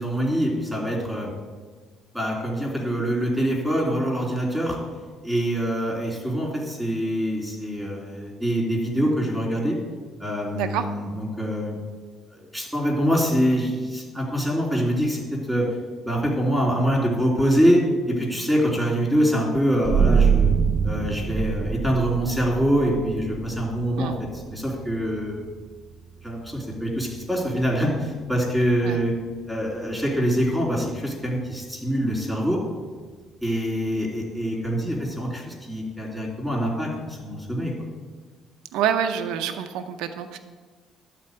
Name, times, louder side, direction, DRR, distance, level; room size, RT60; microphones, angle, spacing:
voice 1, 0.0-1.3 2.1-4.8 5.2-9.8 10.2-11.8 12.3-15.2 15.5-15.6 16.0-17.8 18.1-20.5 20.8-25.5 26.2-29.1 29.5-32.6 33.4-37.7, equal, ahead, -2 dB, 3.0 m, -24 dB
sound 1, 19.8-31.1, right 6 dB, 30° right, 0.4 m, -27 dB
voice 2, 38.7-40.4, right 9 dB, 85° right, 8 dB, 0.7 m, -26 dB
12.0 x 4.3 x 7.8 m, 1.4 s
cardioid pair, 125°, 0 cm